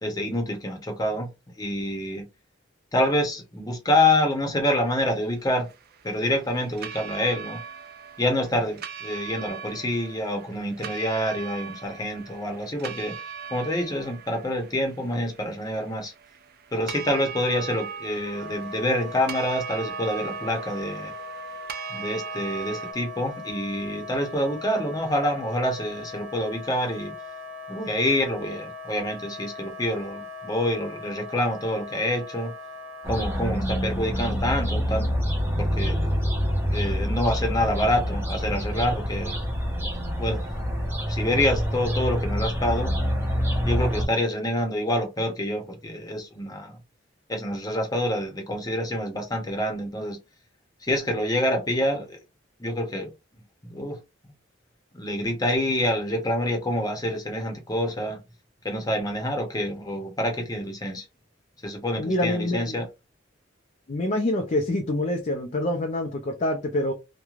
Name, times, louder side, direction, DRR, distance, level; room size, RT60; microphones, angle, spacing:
voice 1, 0.0-1.3 1.6-2.2 2.9-5.7 6.0-7.6 8.2-13.1 13.5-16.1 16.7-21.1 21.9-27.1 27.7-32.5 33.1-35.3 35.6-36.0 36.7-39.4 40.2-40.4 41.1-43.0 43.7-46.8 47.3-50.2 50.8-52.2 52.6-53.1 53.6-54.0 54.9-58.2 58.6-61.1 61.6-62.9, left 1 dB, 20° left, 0.8 m, -27 dB
sound 1, 4.9-22.9, right 7 dB, 55° right, 0.4 m, -40 dB
Wind instrument woodwind instrument, 18.3-33.5, left 2 dB, 75° right, 1.0 m, -39 dB
sound 2, 33.0-44.0, equal, 10° right, 0.7 m, -26 dB
voice 2, 62.0-62.8 63.9-66.9, left 1 dB, 40° left, 0.4 m, -26 dB
3.1 x 2.2 x 2.4 m
head